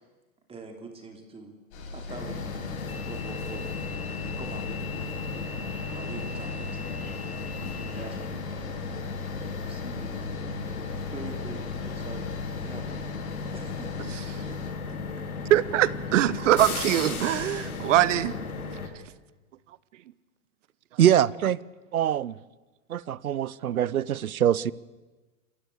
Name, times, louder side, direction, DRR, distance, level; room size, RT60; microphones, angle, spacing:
voice 1, 0.5-1.5 1.9-3.6 4.2-5.5 5.9-7.0 7.8-8.7 9.5-10.2 11.1-12.3 12.6-13.2 13.5-14.5, right 3 dB, 15° right, 4 dB, 3.1 m, -44 dB
sound 1, 1.7-14.7, left 4 dB, 50° left, 7.2 m, -40 dB
sound 2, 2.1-18.9, left 4 dB, 85° left, 3.6 m, -35 dB
voice 2, 15.5-18.4, right 13 dB, 60° right, 19 dB, 1.0 m, -22 dB
voice 3, 21.0-21.6 21.9-22.4 22.9-24.7, right 10 dB, 85° right, 22 dB, 0.9 m, -23 dB
28.0 x 15.5 x 8.4 m, 1.2 s
hypercardioid pair, 125°, 42 cm